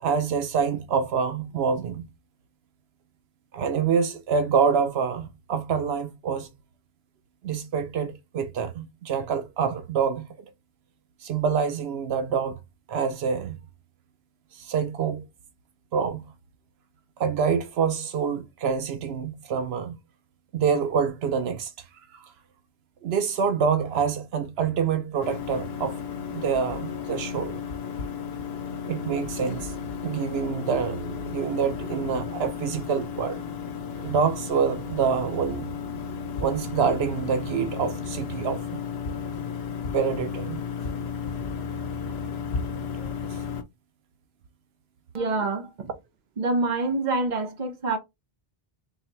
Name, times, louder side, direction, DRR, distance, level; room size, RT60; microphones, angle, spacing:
voice 1, 0.0-2.1 3.5-6.5 7.4-10.3 11.2-12.6 12.9-13.6 14.5-15.2 15.9-16.2 17.2-20.0 20.5-21.7 22.1-22.3 23.0-26.0 26.3-27.6 28.9-29.7 30.0-31.0 31.3-33.4 34.0-35.7 36.4-38.8 39.9-40.6 43.0-43.1, right 6 dB, 85° right, 0.9 m, -26 dB
sound 1, 25.2-43.6, left 6 dB, 80° left, 0.9 m, -33 dB
voice 2, 45.1-45.9 46.4-48.0, right 3 dB, 50° right, 1.0 m, -26 dB
4.0 x 3.2 x 3.0 m
omnidirectional pair, 1.0 m